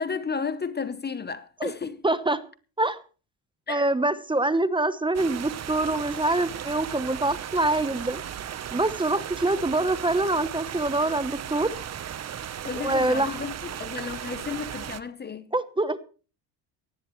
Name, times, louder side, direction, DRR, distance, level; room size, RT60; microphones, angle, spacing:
voice 1, 0.0-2.0 3.7-3.9 12.6-15.5, left 5 dB, 25° left, 0.9 m, -33 dB
voice 2, 2.0-2.4 2.8-3.0 3.7-8.2 8.7-11.7 12.8-13.4 15.5-16.0, right 2 dB, 10° right, 1.0 m, -25 dB
sound 1, 5.1-15.0, right 9 dB, 40° right, 1.0 m, -36 dB
18.0 x 15.0 x 3.2 m
supercardioid pair, 95°, 41 cm